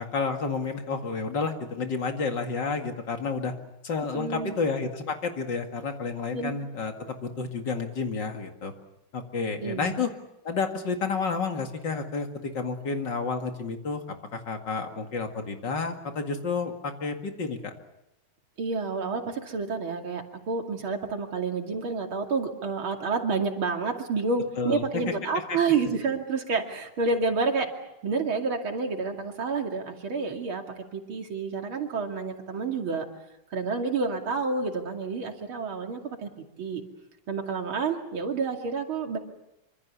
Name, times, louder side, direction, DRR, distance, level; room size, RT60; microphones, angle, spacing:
voice 1, 0.0-3.5 3.8-8.7 9.1-10.1 10.4-14.0 14.3-17.7 24.6-25.1 25.5-25.6, left 4 dB, 60° left, 5 dB, 2.8 m, -30 dB
voice 2, 4.1-4.6 6.3-6.5 9.6-10.0 18.6-27.7 28.0-30.6 30.9-33.1 33.5-36.3 36.6-36.8 37.3-39.2, right 4 dB, 90° right, 3 dB, 3.4 m, -29 dB
25.5 x 25.5 x 7.0 m, 0.90 s
omnidirectional pair, 2.2 m